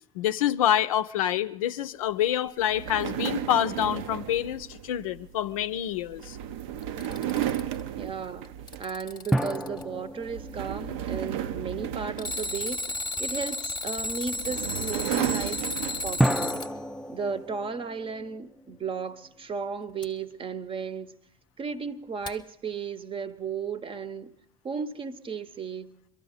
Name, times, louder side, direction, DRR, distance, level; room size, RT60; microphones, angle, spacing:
voice 1, 0.1-6.4, left 11 dB, 70° left, 0.5 m, -27 dB
sound 1, 2.6-9.1 9.5-9.8 10.2-13.2 14.0-16.5, right 11 dB, 60° right, 0.6 m, -34 dB
sound 2, 4.9-5.7 9.3-12.1 16.2-19.4, right 1 dB, ahead, 0.5 m, -31 dB
Alarm, 6.8-7.8 8.4-9.8 12.2-16.7 20.0-20.1 22.3-22.4, left 2 dB, 25° left, 0.9 m, -33 dB
voice 2, 8.0-8.5 8.8-12.8 13.2-15.6 16.0-16.6 17.1-21.1 21.6-24.3 24.6-25.9, right 5 dB, 30° right, 0.8 m, -34 dB
23.0 x 13.0 x 4.0 m
figure-of-eight pair, 60°, 19 cm